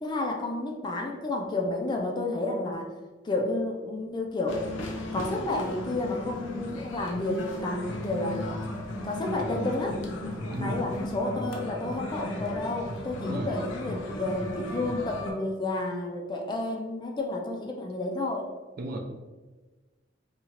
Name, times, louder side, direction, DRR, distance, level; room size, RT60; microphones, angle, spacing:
voice 1, 0.0-2.9 3.2-4.6 5.1-8.6 9.0-10.0 10.6-18.5, left 2 dB, 25° left, 1 dB, 0.3 m, -31 dB
sound 1, 4.5-15.3, left 1 dB, 90° left, 0.5 m, -36 dB
voice 2, 10.5-10.9 13.2-13.7 18.8-19.0, right 1 dB, 50° right, 2 dB, 0.4 m, -34 dB
2.9 x 2.3 x 2.8 m, 1.2 s
head